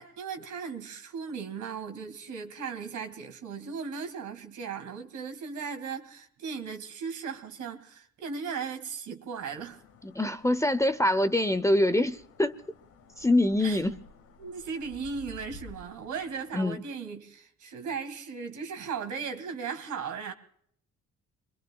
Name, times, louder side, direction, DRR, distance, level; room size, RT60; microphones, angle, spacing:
voice 1, 0.0-9.8 13.6-13.8 14.4-20.3, right 6 dB, 75° right, 2.2 m, -37 dB
sound 1, 9.5-16.8, left 3 dB, 90° left, 1.7 m, -53 dB
voice 2, 10.0-12.5 13.2-14.0 16.5-16.8, left 1 dB, 10° left, 0.6 m, -25 dB
27.5 x 22.5 x 2.3 m
cardioid pair, 90°, 30 cm